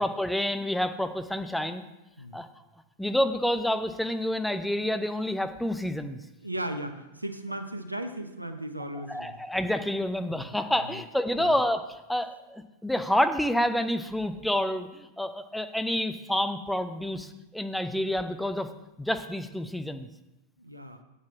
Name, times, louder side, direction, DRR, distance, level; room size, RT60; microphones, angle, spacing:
voice 1, 0.0-1.8 2.3-2.5 3.0-6.2 9.1-11.8 12.1-18.7 19.0-20.1, left 1 dB, ahead, 8 dB, 0.7 m, -28 dB
voice 2, 6.4-9.5 10.3-11.0 11.4-11.6 20.6-21.0, right 1 dB, 85° right, 7 dB, 0.9 m, -37 dB
8.9 x 6.8 x 6.0 m, 0.96 s
figure-of-eight pair, 90°, 0 cm